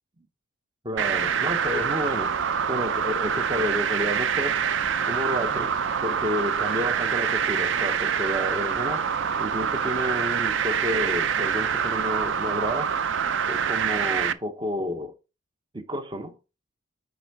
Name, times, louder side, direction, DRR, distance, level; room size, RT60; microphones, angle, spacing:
voice 1, 0.8-2.4 2.7-4.6 5.0-5.8 6.0-9.0 9.4-12.9 13.5-15.1 15.7-16.4, equal, 20° right, 0.8 m, -30 dB
sound 1, 1.0-14.3, right 7 dB, 60° right, 0.4 m, -26 dB
9.8 x 3.5 x 4.7 m
head